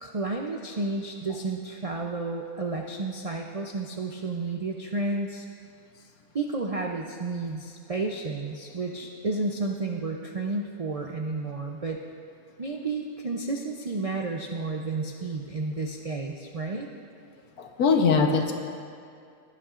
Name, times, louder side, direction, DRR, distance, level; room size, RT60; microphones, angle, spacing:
voice 1, 0.0-5.4 6.3-12.0 12.6-16.9, right 3 dB, 70° right, 1 dB, 0.3 m, -31 dB
voice 2, 17.6-18.5, left 5 dB, 85° left, 4 dB, 1.4 m, -21 dB
17.5 x 11.0 x 2.5 m, 2.4 s
omnidirectional pair, 1.5 m